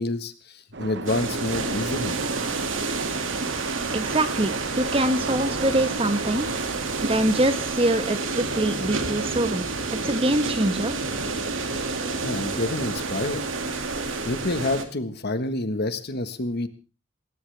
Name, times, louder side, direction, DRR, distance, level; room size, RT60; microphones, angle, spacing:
voice 1, 0.0-2.2 12.2-13.4 14.2-16.7, left 2 dB, 55° left, 10 dB, 1.5 m, -28 dB
sound 1, 0.7-11.4, right 3 dB, 60° right, 1.3 m, -39 dB
sound 2, 1.1-14.8, right 3 dB, 85° right, 2.3 m, -29 dB
voice 2, 3.9-6.5 7.0-9.6 10.0-11.0, right 1 dB, 30° right, 9 dB, 1.5 m, -24 dB
Boat Water vehicle, 6.0-12.6, left 1 dB, 15° left, 7.2 m, -53 dB
19.0 x 18.5 x 3.5 m, 0.33 s
head